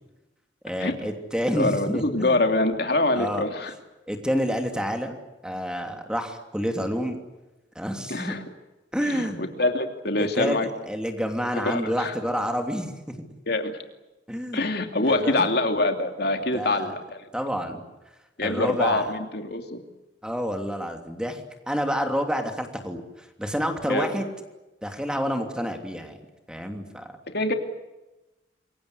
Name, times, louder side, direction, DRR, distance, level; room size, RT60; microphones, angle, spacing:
voice 1, 0.6-2.4 3.2-3.4 4.1-5.2 5.4-7.2 7.7-8.3 8.9-9.5 10.2-10.6 10.9-13.2 14.3-14.6 15.0-15.5 16.3-16.9 17.3-17.8 18.4-19.1 20.2-24.3 24.8-26.2 26.5-27.1, equal, 5° right, 4 dB, 3.0 m, -29 dB
voice 2, 1.5-3.7 8.1-8.4 9.0-10.7 11.6-12.1 13.5-13.7 14.5-17.0 18.4-19.8 23.9-24.1 27.3-27.5, left 2 dB, 60° left, 5 dB, 2.8 m, -25 dB
27.5 x 23.5 x 8.2 m, 1.1 s
head